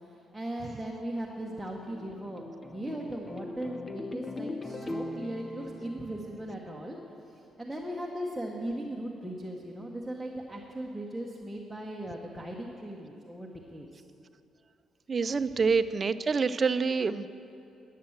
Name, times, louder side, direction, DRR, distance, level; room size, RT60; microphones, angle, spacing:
voice 1, 0.0-14.1, right 1 dB, 5° right, -3 dB, 1.1 m, -38 dB
sound 1, 1.6-7.0, left 2 dB, 25° left, 0.6 m, -41 dB
voice 2, 15.1-17.3, right 5 dB, 40° right, 13 dB, 0.4 m, -27 dB
10.5 x 7.5 x 7.2 m, 2.7 s
cardioid pair, 90°, 0 cm